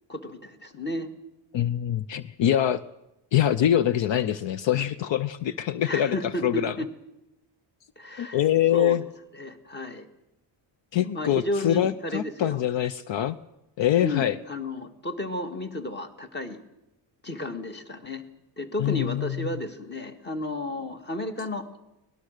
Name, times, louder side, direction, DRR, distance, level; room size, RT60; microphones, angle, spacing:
voice 1, 0.1-1.1 5.9-6.9 8.0-8.4 8.7-9.0 9.3-10.1 11.0-12.6 14.0-16.6 17.2-18.2 18.6-21.7, left 1 dB, 20° left, 8 dB, 1.8 m, -33 dB
voice 2, 1.5-2.8 3.3-6.7 8.2-9.0 10.9-13.4 13.8-14.4 18.8-19.5, left 11 dB, 70° left, 15 dB, 0.8 m, -24 dB
24.0 x 19.0 x 6.6 m, 0.90 s
wide cardioid pair, 155°, 47 cm